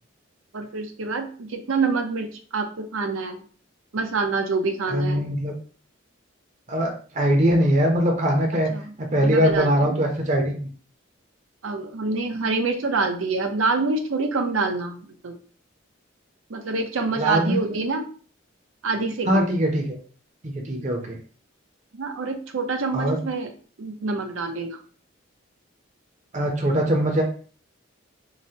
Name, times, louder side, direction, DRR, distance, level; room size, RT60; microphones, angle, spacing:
voice 1, 0.5-3.4 3.9-5.2 8.7-8.9 9.2-10.0 11.6-15.4 16.5-18.0 18.8-19.5 21.9-23.5 23.8-24.8, right 3 dB, 85° right, 5 dB, 0.6 m, -26 dB
voice 2, 4.9-5.5 6.7-8.7 9.0-10.7 17.2-17.8 19.3-20.0 20.4-21.2 22.9-23.2 26.3-27.2, equal, 35° right, 1 dB, 0.6 m, -22 dB
4.8 x 2.1 x 2.7 m, 0.42 s
head